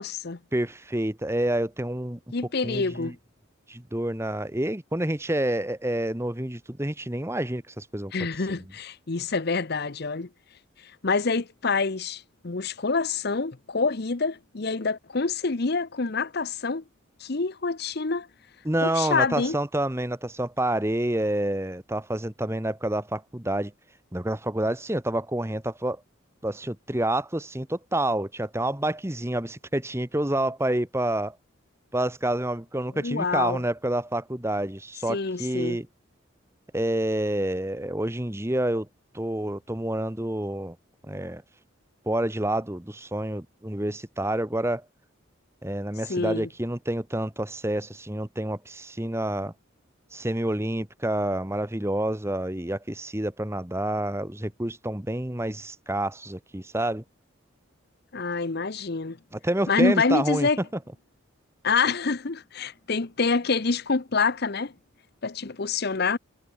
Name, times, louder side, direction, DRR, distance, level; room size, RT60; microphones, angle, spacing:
voice 1, 0.0-0.4 2.3-3.2 8.1-10.3 11.0-16.8 17.2-18.3 18.8-19.6 32.9-33.6 35.1-35.8 46.1-46.5 58.1-59.2 59.7-60.6 61.6-64.7 65.2-66.2, left 4 dB, 50° left, 0.9 m, -26 dB
voice 2, 0.5-2.2 2.6-3.1 3.7-8.3 18.6-23.7 24.1-26.0 26.4-31.4 31.9-35.9 36.7-38.9 39.1-40.8 41.1-41.4 42.1-44.8 45.6-49.5 50.1-57.0 59.3-60.5, right 1 dB, 15° right, 1.3 m, -28 dB
head